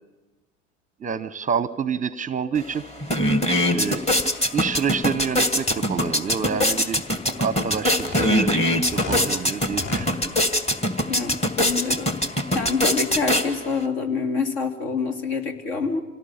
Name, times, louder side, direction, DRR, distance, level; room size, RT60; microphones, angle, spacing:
voice 1, 1.0-2.8 3.7-4.1 4.5-7.0 7.4-10.3, right 6 dB, 20° right, 17 dB, 0.7 m, -28 dB
sound 1, 2.6-2.7 2.9-13.9, left 1 dB, 15° left, 1.9 m, -23 dB
sound 2, 7.9-9.3 9.6-10.1, left 3 dB, 40° left, 4.1 m, -33 dB
voice 2, 11.1-12.1 12.5-16.0, left 4 dB, 65° left, 5 dB, 2.8 m, -26 dB
26.5 x 18.0 x 7.1 m, 1.1 s
hypercardioid pair, 85°, 37 cm